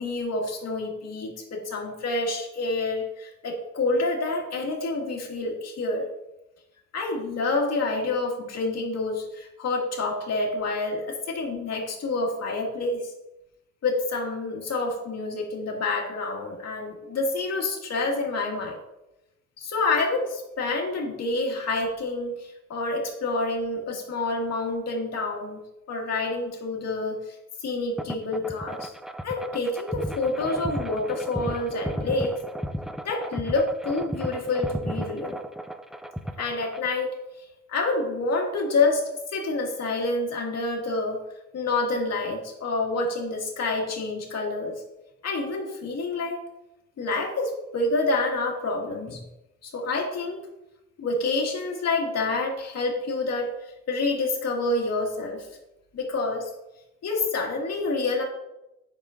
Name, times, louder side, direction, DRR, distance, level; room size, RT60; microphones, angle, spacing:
voice 1, 0.0-6.1 6.9-13.1 13.8-18.8 19.6-25.6 25.9-27.2 27.6-28.9 29.2-32.4 33.0-35.4 36.4-37.2 37.7-41.2 41.5-44.8 45.2-46.4 47.0-49.2 49.6-50.5 51.0-53.5 53.9-55.5 55.9-56.5 57.0-58.2, left 3 dB, 60° left, -1 dB, 2.0 m, -28 dB
sound 1, 28.0-36.9, equal, ahead, 0.4 m, -34 dB
8.7 x 6.3 x 2.5 m, 0.91 s
cardioid pair, 90°, 30 cm